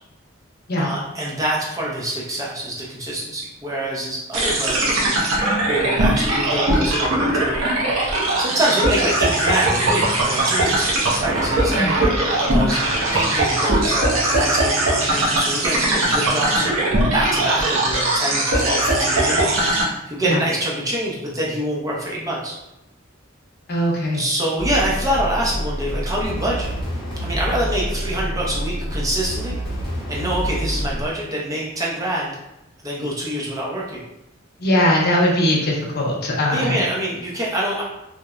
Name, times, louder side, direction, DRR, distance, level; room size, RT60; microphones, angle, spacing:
voice 1, 0.8-7.6 8.0-10.9 11.2-22.6 24.1-26.7 27.2-29.6 30.1-32.3 32.8-34.0 36.5-37.8, right 1 dB, 15° right, -4 dB, 0.5 m, -26 dB
sound 1, 4.3-19.8, right 1 dB, 75° right, 0.6 m, -20 dB
voice 2, 23.7-24.2 34.6-36.8, left 1 dB, 50° left, -2 dB, 0.5 m, -20 dB
sound 2, 24.6-31.0, equal, 25° left, 0.9 m, -27 dB
2.9 x 2.0 x 2.3 m, 0.90 s
head